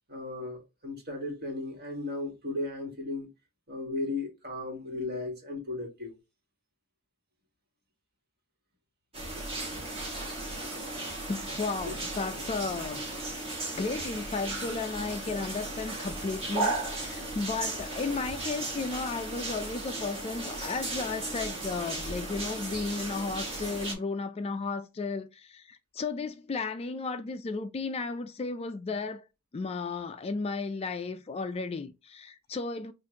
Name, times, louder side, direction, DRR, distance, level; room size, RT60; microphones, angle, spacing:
voice 1, 0.1-3.3 3.7-6.2 11.8-11.9, left 2 dB, 45° right, 1.7 m, -36 dB
sound 1, 9.1-23.9, right 2 dB, 25° right, 1.4 m, -36 dB
voice 2, 11.3-13.0 13.8-29.3 29.5-32.9, left 4 dB, 25° left, 0.3 m, -34 dB
5.7 x 2.5 x 2.8 m
head